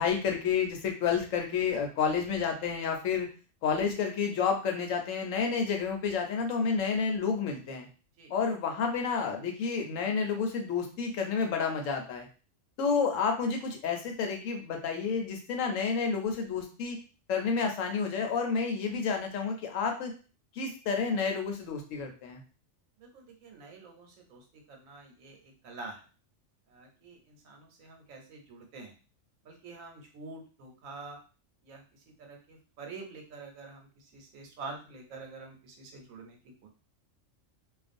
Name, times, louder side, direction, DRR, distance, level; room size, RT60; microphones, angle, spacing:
voice 1, 0.0-3.3 3.6-7.9 8.3-12.3 12.8-17.0 17.3-20.1 20.5-22.4, left 5 dB, 80° left, 3 dB, 1.0 m, -30 dB
voice 2, 23.0-26.0 26.7-28.9 29.4-31.2 31.6-36.7, right 3 dB, 90° right, 2 dB, 1.1 m, -47 dB
2.4 x 2.2 x 2.5 m, 0.35 s
omnidirectional pair, 1.3 m